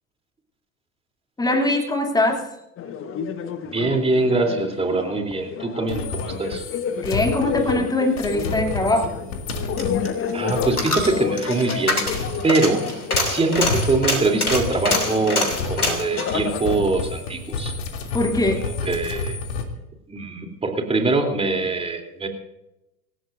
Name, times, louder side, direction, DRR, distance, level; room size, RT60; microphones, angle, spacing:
voice 1, 1.4-2.5 7.0-9.2 18.1-18.6, left 1 dB, 10° left, 3 dB, 3.1 m, -22 dB
sound 1, 2.8-16.9, left 7 dB, 30° left, 1.4 m, -30 dB
voice 2, 3.7-6.7 10.3-12.1 12.4-12.9 13.2-17.7 18.6-19.4 20.1-22.3, right 3 dB, 15° right, 4 dB, 3.5 m, -23 dB
sound 2, 5.9-12.9 13.1-19.6, left 4 dB, 60° left, 3.1 m, -31 dB
Coin (dropping), 9.3-17.7 18.0-18.1, left 1 dB, 85° left, 3.0 m, -26 dB
26.5 x 16.0 x 2.7 m, 0.93 s
figure-of-eight pair, 80°, 43 cm